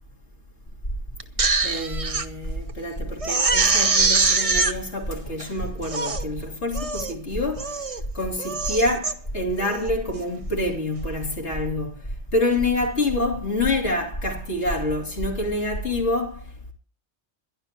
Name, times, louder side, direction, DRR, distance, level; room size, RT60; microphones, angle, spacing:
sound 1, 0.7-16.1, right 1 dB, 50° left, 3.2 m, -34 dB
Crying sobbing, 1.2-2.3 2.7-2.8 3.2-4.7 5.4-5.5 5.8-6.2 6.7-7.1 7.6-8.0 8.4-9.1 9.6-9.9, right 4 dB, 30° right, 1.1 m, -23 dB
voice 1, 1.6-7.8 8.1-12.0 12.3-16.7, left 2 dB, 75° left, 3.5 m, -27 dB
22.5 x 11.5 x 3.0 m
omnidirectional pair, 1.2 m